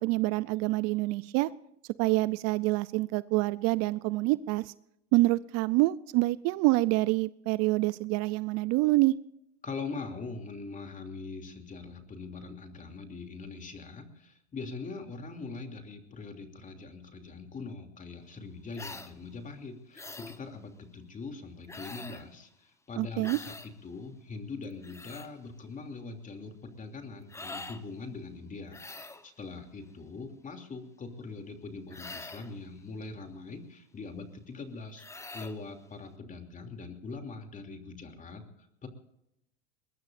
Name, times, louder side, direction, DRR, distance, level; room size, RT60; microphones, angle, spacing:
voice 1, 0.0-1.5 2.0-4.7 5.1-9.1 23.0-23.4, right 20 dB, 50° right, 18 dB, 0.6 m, -26 dB
voice 2, 9.6-38.9, left 4 dB, 25° left, 5 dB, 2.9 m, -42 dB
sound 1, 18.7-19.1 20.0-20.4 21.7-22.3 23.2-23.7 24.6-25.3 27.3-27.8 28.7-29.3 31.9-32.5 35.0-35.6, left 3 dB, 10° left, 1.1 m, -44 dB
22.0 x 21.0 x 2.6 m, 0.81 s
hypercardioid pair, 105°, 32 cm